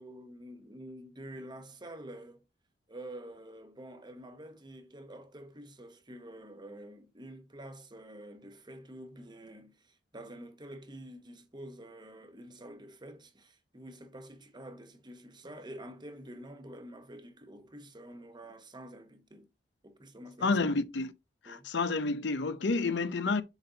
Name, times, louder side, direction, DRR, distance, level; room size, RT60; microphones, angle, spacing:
voice 1, 0.0-2.4 2.9-19.4 19.8-20.6 21.4-21.7, right 1 dB, 25° right, 1.0 m, -48 dB
voice 2, 20.4-21.1 21.4-23.4, left 3 dB, 80° left, 0.7 m, -29 dB
7.2 x 4.2 x 3.9 m
head